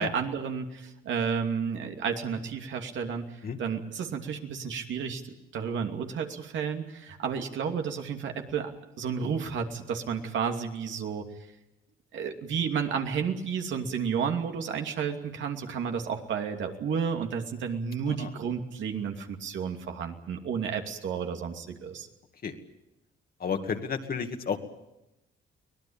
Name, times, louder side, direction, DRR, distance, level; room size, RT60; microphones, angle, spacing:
voice 1, 0.0-8.7 9.0-11.3 12.1-22.1, right 6 dB, 70° right, 4 dB, 2.7 m, -32 dB
voice 2, 23.4-24.6, left 6 dB, 50° left, 5 dB, 2.4 m, -31 dB
24.0 x 18.5 x 8.9 m, 0.92 s
cardioid pair, 90°, 20 cm